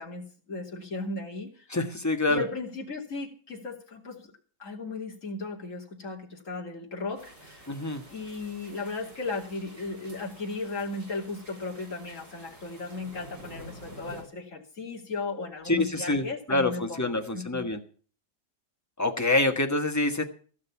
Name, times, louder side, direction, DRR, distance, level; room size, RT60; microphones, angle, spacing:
voice 1, 0.0-1.7 2.3-4.2 4.6-7.7 8.1-17.6, left 3 dB, 45° left, 0 dB, 3.0 m, -36 dB
voice 2, 1.7-2.4 7.7-8.0 15.7-17.8 19.0-20.2, left 2 dB, 10° left, 5 dB, 1.3 m, -26 dB
sound 1, 7.2-14.2, right 1 dB, 75° right, 6.1 m, -49 dB
16.0 x 6.7 x 8.4 m, 0.42 s
omnidirectional pair, 1.9 m